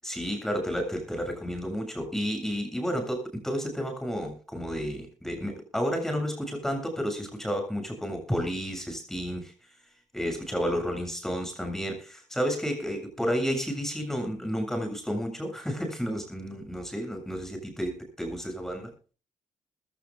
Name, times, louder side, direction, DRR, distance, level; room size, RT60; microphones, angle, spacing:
voice 1, 0.0-9.5 10.1-18.9, equal, 5° left, 5 dB, 7.5 m, -31 dB
20.5 x 16.5 x 2.4 m, 0.36 s
cardioid pair, 130°, 12 cm